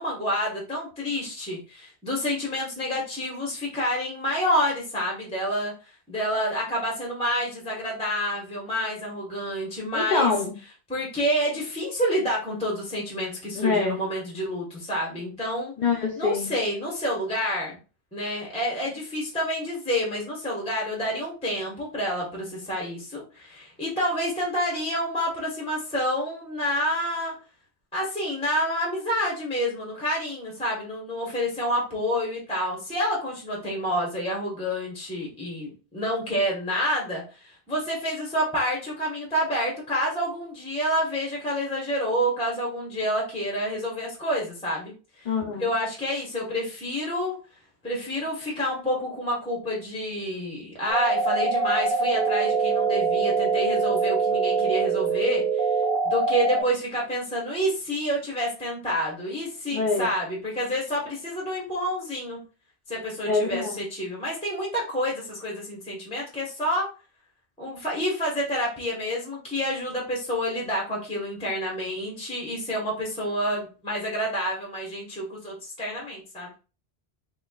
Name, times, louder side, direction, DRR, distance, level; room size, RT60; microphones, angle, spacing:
voice 1, 0.0-5.7 6.1-10.3 10.9-15.7 16.2-17.8 18.1-27.3 27.9-45.3 45.6-47.3 47.8-55.7 56.0-62.4 62.9-66.9 67.6-76.5, equal, 5° left, -2 dB, 1.0 m, -28 dB
voice 2, 9.9-10.5 13.5-14.0 15.8-16.5 45.3-45.7 59.7-60.1 63.3-63.8, left 4 dB, 50° left, 2 dB, 0.6 m, -25 dB
sound 1, 50.9-56.6, right 4 dB, 55° right, 0.9 m, -24 dB
4.1 x 3.0 x 2.3 m, 0.34 s
omnidirectional pair, 1.1 m